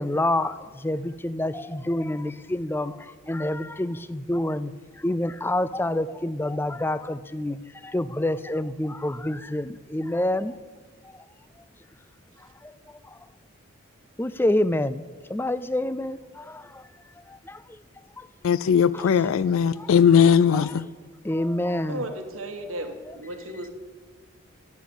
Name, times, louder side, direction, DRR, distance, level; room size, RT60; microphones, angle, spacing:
voice 1, 0.0-4.7 5.0-7.6 7.8-10.5 12.6-12.7 13.1-13.2 14.2-16.8 17.3-17.6 18.2-18.3 18.9-19.1 19.8-19.9 20.5-20.6 21.2-22.0, left 1 dB, 10° left, 0.3 m, -27 dB
voice 2, 18.4-20.9, left 7 dB, 80° left, 0.4 m, -19 dB
voice 3, 21.8-23.7, right 1 dB, 90° right, 1.5 m, -35 dB
14.0 x 10.5 x 7.1 m
head